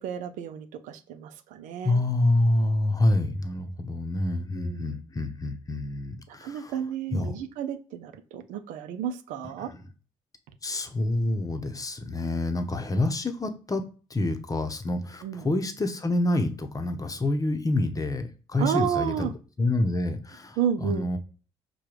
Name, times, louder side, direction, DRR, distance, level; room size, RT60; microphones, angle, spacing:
voice 1, 0.0-2.0 4.5-5.0 6.4-9.7 15.2-15.5 18.6-19.3 20.6-21.1, right 8 dB, 75° right, 10 dB, 0.5 m, -31 dB
voice 2, 1.8-6.8 7.1-7.4 9.6-9.9 10.6-13.8 14.1-19.3 19.6-21.2, left 2 dB, 25° left, 7 dB, 0.8 m, -27 dB
4.8 x 2.3 x 4.6 m, 0.36 s
hypercardioid pair, 50°, 13 cm